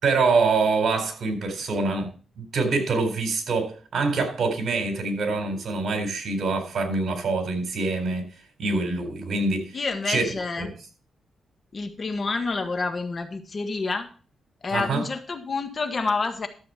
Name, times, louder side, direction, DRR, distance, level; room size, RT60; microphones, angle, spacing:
voice 1, 0.0-2.1 2.4-8.3 8.6-9.8 10.1-10.2 10.6-10.7 14.7-15.0, right 3 dB, 60° right, 4.0 m, -25 dB
voice 2, 9.7-10.7 11.7-14.1 14.6-16.5, left 4 dB, 40° left, 1.5 m, -28 dB
12.5 x 7.5 x 4.3 m
cardioid pair, 90°, 0 cm